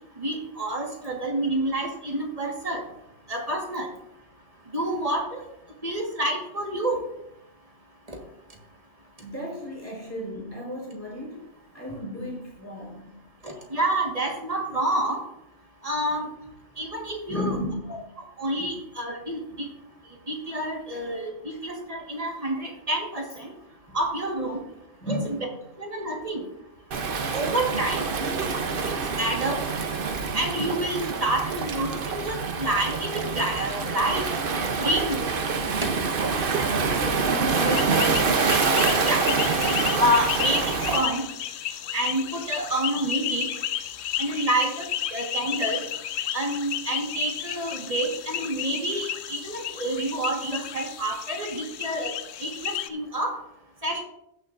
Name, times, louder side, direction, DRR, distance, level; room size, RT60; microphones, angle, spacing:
voice 1, 0.2-2.8 3.3-3.9 4.7-5.4 5.8-7.1 8.1-8.2 13.4-15.2 15.8-16.3 16.8-17.5 18.4-19.7 20.3-23.5 23.9-24.6 25.1-25.4 25.8-26.4 27.3-28.1 29.2-29.6 30.3-34.2 34.8-35.2 39.0-39.2 40.0-40.6 40.9-41.2 41.9-43.5 44.2-45.8 46.3-52.1 52.4-53.3 53.8-54.0, right 1 dB, 30° right, 1 dB, 1.6 m, -28 dB
voice 2, 9.2-13.1 17.3-18.0 18.6-18.7 21.5-21.6 23.9-24.0 25.0-25.5 36.8-38.3, equal, 10° left, -4 dB, 4.1 m, -34 dB
Waves surf, 26.9-41.1, right 4 dB, 50° right, 0.9 m, -26 dB
sound 1, 37.5-52.9, left 11 dB, 65° left, 0.8 m, -33 dB
16.0 x 7.0 x 2.6 m, 0.82 s
omnidirectional pair, 1.3 m